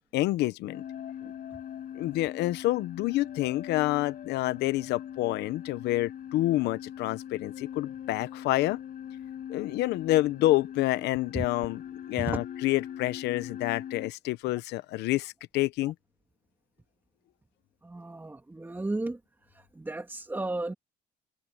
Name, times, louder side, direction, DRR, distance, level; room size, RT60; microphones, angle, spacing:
voice 1, 0.1-0.8 1.9-8.8 9.5-11.8 12.1-15.9, left 17 dB, 80° left, 1.0 m, -28 dB
sound 1, 0.7-14.1, left 10 dB, 55° left, 7.2 m, -41 dB
voice 2, 17.8-19.2 19.5-20.7, right 2 dB, 10° right, 2.6 m, -34 dB
cardioid pair, 110°, 17 cm